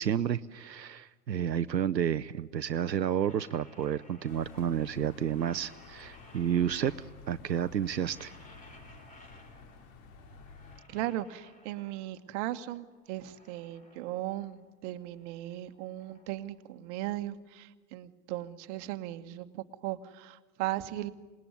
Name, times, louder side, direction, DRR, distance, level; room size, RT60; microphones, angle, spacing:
voice 1, 0.0-8.3, right 9 dB, 85° right, 12 dB, 0.7 m, -31 dB
sound 1, 2.8-4.9 5.2-7.4 7.7-9.9 10.2-12.3 12.7-14.7 15.0-17.2, left 1 dB, 15° left, 4.9 m, -59 dB
sound 2, 4.3-10.8, left 4 dB, 45° left, 3.0 m, -52 dB
voice 2, 10.9-21.1, right 15 dB, 45° right, 10 dB, 1.4 m, -37 dB
27.0 x 19.5 x 9.5 m, 1.4 s
figure-of-eight pair, 90°, 49 cm